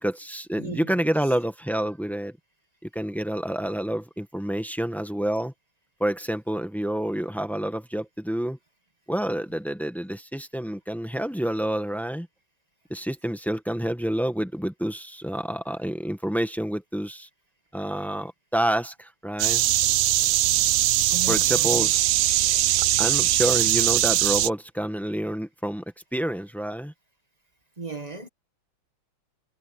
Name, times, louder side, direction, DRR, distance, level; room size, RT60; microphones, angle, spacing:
voice 1, 0.0-2.4 2.8-5.5 6.0-8.6 9.1-12.3 12.9-17.3 17.7-19.7 21.3-22.0 23.0-25.8 26.1-26.9, right 1 dB, ahead, 0.9 m, -28 dB
voice 2, 0.6-1.0 21.1-21.9 22.3-22.5 27.8-28.3, right 3 dB, 20° right, 1.2 m, -36 dB
sound 1, 19.4-24.5, right 14 dB, 70° right, 1.2 m, -21 dB
omnidirectional pair, 2.4 m